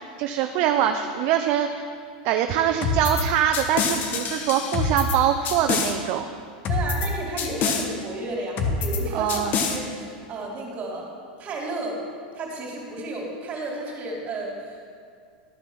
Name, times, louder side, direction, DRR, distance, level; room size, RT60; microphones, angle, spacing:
voice 1, 0.2-1.7 2.2-6.3 9.1-9.5, right 9 dB, 50° right, 6 dB, 0.6 m, -23 dB
sound 1, 2.8-3.2 3.5-5.2 5.5-5.9 6.7-7.1 7.4-7.9 8.6-9.0 9.3-9.8, left 4 dB, 40° left, 1.2 m, -25 dB
voice 2, 6.7-11.1 11.4-12.0 12.3-14.9, right 2 dB, 35° right, -2 dB, 3.0 m, -32 dB
12.5 x 6.0 x 6.1 m, 2.2 s
supercardioid pair, 120°, 5 cm